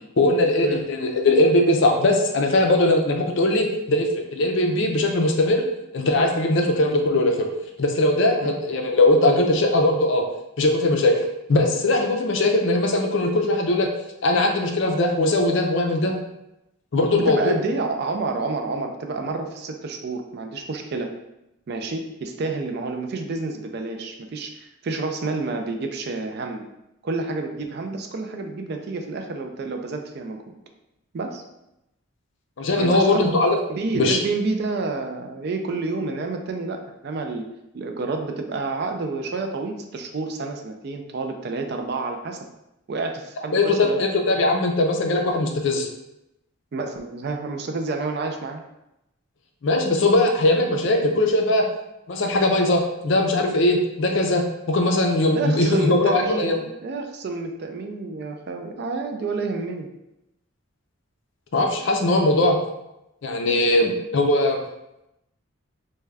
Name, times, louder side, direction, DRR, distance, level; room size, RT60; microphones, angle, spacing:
voice 1, 0.2-5.7 5.9-7.5 7.8-10.2 10.6-11.2 11.5-13.9 14.2-16.2 16.9-17.5 32.6-33.6 33.9-34.2 43.5-45.9 49.6-51.7 52.1-56.6 61.5-62.6 63.2-64.6, left 2 dB, 60° left, 3 dB, 0.4 m, -20 dB
voice 2, 17.1-21.1 21.7-26.7 27.0-30.4 31.1-31.4 32.8-33.3 33.7-42.4 42.9-44.0 46.7-48.6 55.3-59.9, right 3 dB, 50° right, 4 dB, 0.3 m, -29 dB
3.5 x 2.2 x 3.3 m, 0.89 s
head